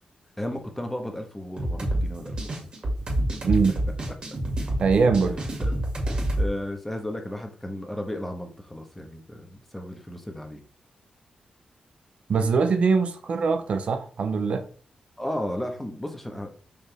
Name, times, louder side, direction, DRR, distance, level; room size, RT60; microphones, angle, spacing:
voice 1, 0.4-2.6 5.6-5.7 6.4-10.6 15.2-16.5, left 1 dB, 5° left, 1.2 m, -34 dB
sound 1, 1.6-6.5, right 1 dB, 40° right, 2.3 m, -27 dB
voice 2, 3.4-3.7 4.8-5.4 12.3-14.7, right 5 dB, 55° right, 0.8 m, -22 dB
6.5 x 5.7 x 3.4 m
wide cardioid pair, 175°, 3 cm